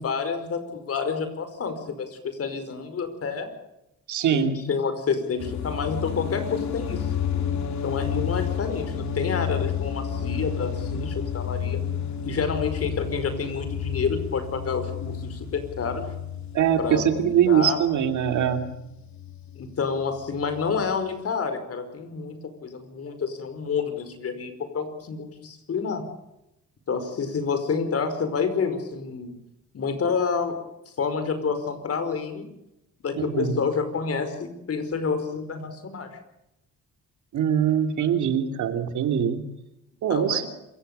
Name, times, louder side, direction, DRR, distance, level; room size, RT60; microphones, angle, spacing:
voice 1, 0.0-3.5 4.3-7.1 7.8-11.8 12.2-16.1 16.8-17.8 19.6-26.0 26.9-29.3 29.7-30.6 31.0-32.5 33.0-36.1 40.1-40.5, left 5 dB, 50° left, 9 dB, 5.1 m, -29 dB
voice 2, 4.1-4.6 16.5-18.7 33.1-33.6 37.3-39.4 40.0-40.5, right 9 dB, 75° right, 7 dB, 2.9 m, -23 dB
sound 1, 5.4-21.3, left 8 dB, 65° left, 3.0 m, -31 dB
27.0 x 16.5 x 6.8 m, 0.86 s
cardioid pair, 90°, 30 cm